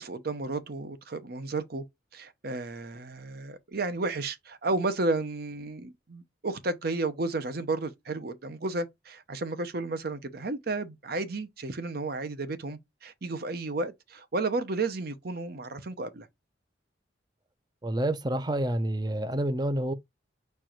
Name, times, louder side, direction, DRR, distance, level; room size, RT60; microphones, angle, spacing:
voice 1, 0.0-1.8 2.1-16.3, right 3 dB, 50° right, 0.8 m, -32 dB
voice 2, 17.8-19.9, right 1 dB, 20° right, 0.6 m, -28 dB
4.5 x 2.5 x 4.4 m
head